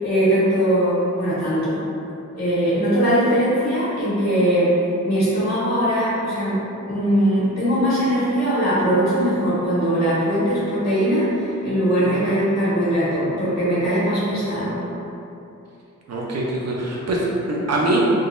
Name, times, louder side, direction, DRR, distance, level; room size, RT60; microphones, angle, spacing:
voice 1, 0.0-1.8 2.3-4.7 5.0-6.6 6.9-14.8, equal, 55° left, -11 dB, 1.5 m, -20 dB
voice 2, 12.0-12.3 16.1-18.0, right 2 dB, 55° right, -4 dB, 0.6 m, -24 dB
3.7 x 2.8 x 2.6 m, 2.8 s
wide cardioid pair, 175°, 31 cm